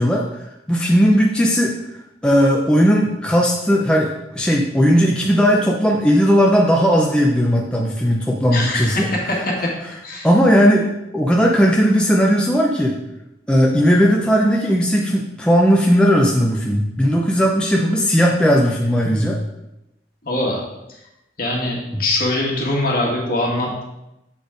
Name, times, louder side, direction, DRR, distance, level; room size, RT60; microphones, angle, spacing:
voice 1, 0.0-1.7 2.2-9.1 10.2-10.9 11.1-13.0 13.5-19.4 21.9-22.0, equal, 5° left, -2 dB, 0.5 m, -16 dB
voice 2, 8.5-9.7 10.0-10.3 20.2-20.6 21.4-23.8, left 1 dB, 50° left, -2 dB, 1.8 m, -22 dB
7.1 x 4.1 x 5.0 m, 0.89 s
head